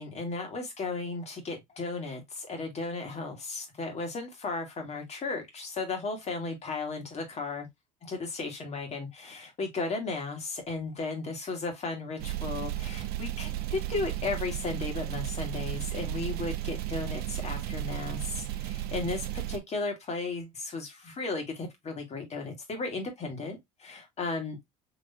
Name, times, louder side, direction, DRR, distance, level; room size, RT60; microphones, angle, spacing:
voice 1, 0.0-7.7 8.0-24.6, left 3 dB, 40° left, 1.7 m, -35 dB
sound 1, 12.2-19.6, right 14 dB, 65° right, 0.6 m, -34 dB
sound 2, 12.4-12.9 13.2-14.0 14.3-15.0 15.3-17.8, left 6 dB, 65° left, 1.0 m, -52 dB
4.1 x 2.9 x 2.7 m
supercardioid pair, 85°, 17 cm